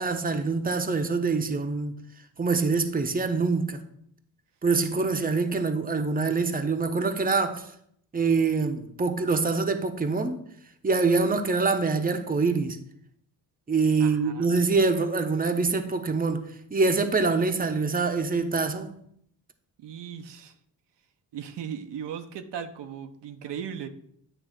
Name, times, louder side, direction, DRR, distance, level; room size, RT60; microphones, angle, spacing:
voice 1, 0.0-1.9 2.4-3.8 4.6-7.7 8.1-10.4 10.8-12.8 13.7-18.9, right 4 dB, 20° right, 0.9 m, -25 dB
voice 2, 14.0-14.5 19.8-20.5 21.3-23.9, right 8 dB, 75° right, 0.8 m, -37 dB
9.1 x 3.2 x 6.2 m
cardioid pair, 70°, 43 cm